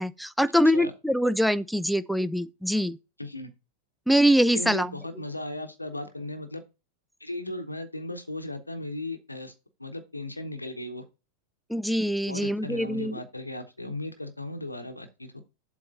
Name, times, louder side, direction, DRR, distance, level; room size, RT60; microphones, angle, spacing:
voice 1, 0.0-3.0 4.1-4.9 11.7-13.2, equal, ahead, 0.3 m, -24 dB
voice 2, 3.2-3.5 4.5-6.6 7.2-9.5 9.8-11.0 12.3-15.4, left 1 dB, 85° left, 0.8 m, -36 dB
7.7 x 3.1 x 5.3 m
figure-of-eight pair, 90°, 0 cm